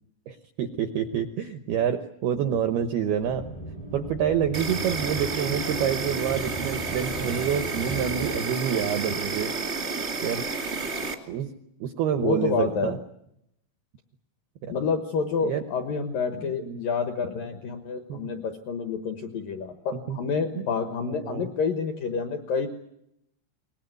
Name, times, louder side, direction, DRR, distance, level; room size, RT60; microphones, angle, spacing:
voice 1, 0.3-3.5 3.9-9.5 10.2-10.4 11.3-11.5 11.8-13.0 14.6-14.7 15.4-15.6 16.4-16.8 18.1-18.3 20.1-20.2 20.6-20.7 21.1-21.5, right 9 dB, 80° right, 8 dB, 2.3 m, -27 dB
sound 1, 3.2-8.4, right 1 dB, 30° left, 0.6 m, -38 dB
Insect, 4.5-11.1, right 4 dB, 40° right, 0.9 m, -31 dB
voice 2, 12.2-13.0 14.7-22.7, left 5 dB, 70° left, 6 dB, 2.1 m, -28 dB
22.5 x 19.5 x 9.4 m, 0.78 s
omnidirectional pair, 5.8 m